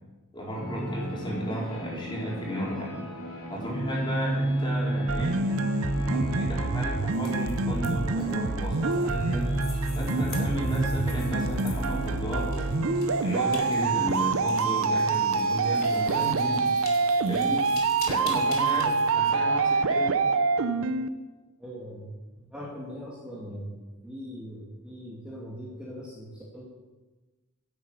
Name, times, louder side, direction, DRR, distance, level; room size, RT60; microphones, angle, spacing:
voice 1, 0.3-2.9 3.5-5.4 6.0-9.5 9.9-12.5 13.2-16.7 17.3-17.7 18.1-20.2, equal, 20° left, -4 dB, 4.3 m, -34 dB
sound 1, 0.5-16.2, right 1 dB, 70° left, 2.7 m, -33 dB
sound 2, 5.1-21.1, right 4 dB, 65° right, 0.7 m, -26 dB
sound 3, 7.1-19.1, left 4 dB, 45° left, 2.7 m, -45 dB
voice 2, 18.8-19.3 21.6-22.1 22.3-26.6, equal, 5° right, -6 dB, 2.2 m, -41 dB
10.5 x 8.8 x 8.1 m, 1.2 s
head